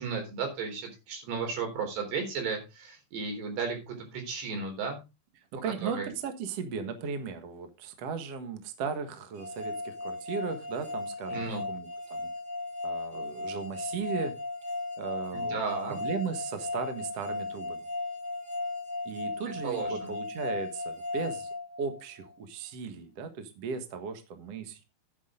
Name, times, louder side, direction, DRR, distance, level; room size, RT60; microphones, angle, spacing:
voice 1, 0.0-5.0 5.8-6.1 11.3-11.6 15.3-16.0 19.5-20.1, right 5 dB, 70° right, 4 dB, 5.9 m, -34 dB
voice 2, 5.5-12.3 12.8-14.4 15.0-15.6 15.9-17.8 19.1-21.5 21.8-24.8, right 5 dB, 55° right, 8 dB, 1.8 m, -36 dB
sound 1, 9.4-22.3, left 2 dB, 30° right, 2.9 m, -36 dB
11.5 x 10.0 x 3.8 m, 0.27 s
omnidirectional pair, 4.9 m